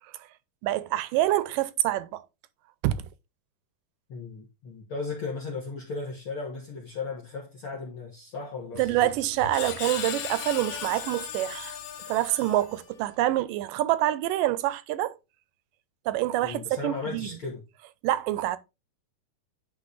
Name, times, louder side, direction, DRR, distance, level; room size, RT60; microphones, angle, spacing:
voice 1, 0.6-2.2 2.8-3.0 8.8-11.8 12.1-15.1 16.1-17.3 18.0-18.6, right 14 dB, 85° right, 2.3 m, -26 dB
voice 2, 4.1-9.1 16.4-17.6, left 4 dB, 55° left, 1.7 m, -36 dB
Screech, 8.8-13.1, left 9 dB, 85° left, 2.8 m, -37 dB
9.8 x 3.8 x 3.9 m
omnidirectional pair, 3.8 m